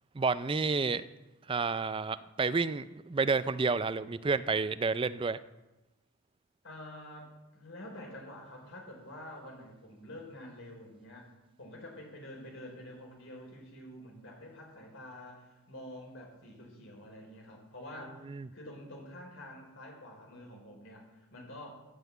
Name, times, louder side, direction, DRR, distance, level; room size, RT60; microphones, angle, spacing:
voice 1, 0.1-1.0 1.5-5.4 18.3-18.5, right 4 dB, 25° right, 14 dB, 0.3 m, -30 dB
voice 2, 6.6-11.3 11.6-21.8, left 1 dB, 55° left, 1 dB, 3.8 m, -48 dB
14.5 x 5.9 x 8.3 m, 1.0 s
head